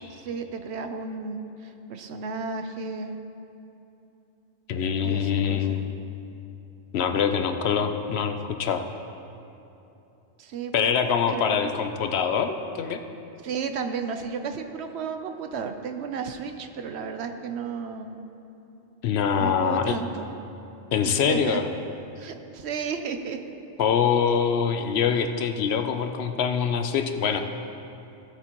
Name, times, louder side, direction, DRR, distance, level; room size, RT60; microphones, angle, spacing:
voice 1, 0.2-3.1 5.0-5.8 10.4-10.9 11.3-11.7 13.4-18.1 19.4-20.3 21.0-21.6 22.2-23.4, right 5 dB, 70° right, 7 dB, 0.9 m, -33 dB
voice 2, 4.7-5.9 6.9-8.8 10.7-13.0 19.0-20.0 20.9-21.6 23.8-27.4, left 7 dB, 70° left, 7 dB, 0.8 m, -24 dB
16.0 x 8.0 x 3.0 m, 2.9 s
omnidirectional pair, 1.2 m